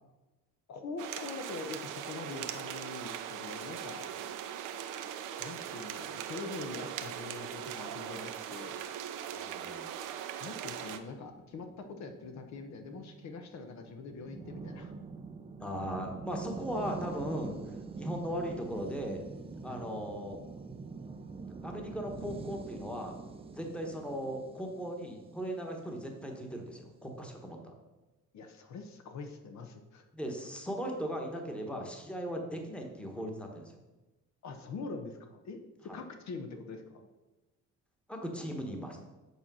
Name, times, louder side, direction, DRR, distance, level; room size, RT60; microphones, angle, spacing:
voice 1, 0.7-4.1 5.4-8.8 10.4-14.9 19.7-19.8 28.3-30.0 34.4-37.0, left 4 dB, 60° left, 6 dB, 1.0 m, -44 dB
sound 1, 1.0-11.0, right 10 dB, 80° right, 0.7 m, -40 dB
voice 2, 9.3-9.9 15.6-19.2 19.6-20.4 21.2-23.1 23.5-27.7 30.1-33.7 35.9-36.0 38.1-39.0, equal, 5° left, 2 dB, 1.2 m, -38 dB
sound 2, 11.0-26.4, right 4 dB, 20° right, 0.5 m, -45 dB
8.5 x 4.3 x 6.1 m, 1.1 s
cardioid pair, 135°, 31 cm